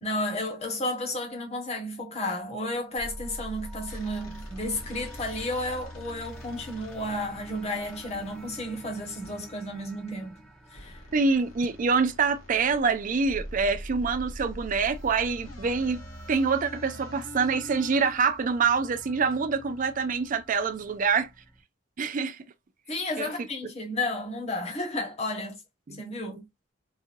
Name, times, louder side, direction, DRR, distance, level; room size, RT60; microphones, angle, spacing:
voice 1, 0.0-10.3 10.7-11.0 22.9-25.6 26.0-26.5, left 1 dB, 35° left, 1.3 m, -32 dB
sound 1, 3.0-21.6, equal, 5° left, 0.7 m, -44 dB
sound 2, 3.9-9.4 10.7-18.1, left 1 dB, 90° left, 1.5 m, -47 dB
voice 2, 11.1-21.3 22.0-22.4 23.2-23.3 25.9-26.0, right 5 dB, 40° right, 0.4 m, -26 dB
4.0 x 2.5 x 2.6 m
head